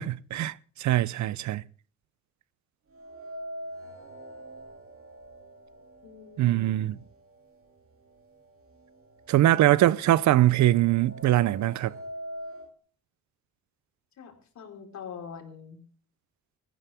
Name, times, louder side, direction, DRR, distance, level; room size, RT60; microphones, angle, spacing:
voice 1, 0.0-1.6 6.4-7.0 9.3-11.9, right 14 dB, 70° right, 0.6 m, -22 dB
sound 1, 2.9-7.0 7.3-7.4 8.4-8.5 8.9-12.7, right 1 dB, 45° right, 2.6 m, -43 dB
voice 2, 6.0-7.0 14.2-15.8, left 7 dB, 65° left, 4.4 m, -44 dB
19.5 x 15.0 x 3.6 m
cardioid pair, 90°, 30 cm